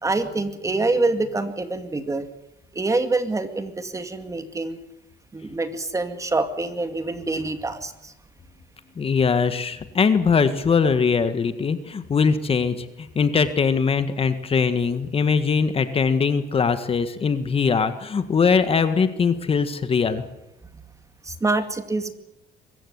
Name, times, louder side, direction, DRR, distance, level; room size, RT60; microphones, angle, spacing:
voice 1, 0.0-2.3 2.7-4.8 5.3-8.1 20.7-20.8 21.2-22.1, right 3 dB, 20° right, 8 dB, 2.3 m, -26 dB
voice 2, 9.0-20.2, left 5 dB, 35° left, 10 dB, 1.6 m, -21 dB
24.0 x 14.5 x 9.6 m, 0.88 s
cardioid pair, 110°, 17 cm